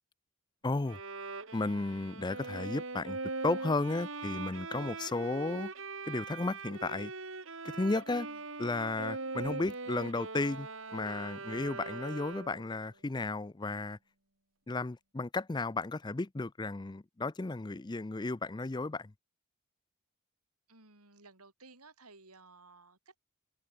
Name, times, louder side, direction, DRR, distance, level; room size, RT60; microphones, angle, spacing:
voice 1, 0.6-1.0 1.5-5.7 6.0-7.1 7.6-8.3 8.6-14.0 14.7-19.1, left 3 dB, 20° left, 0.4 m, -34 dB
Bowed string instrument, 0.9-12.7, right 3 dB, 60° right, 2.5 m, -41 dB
voice 2, 20.7-23.2, right 3 dB, 85° right, 5.8 m, -57 dB
head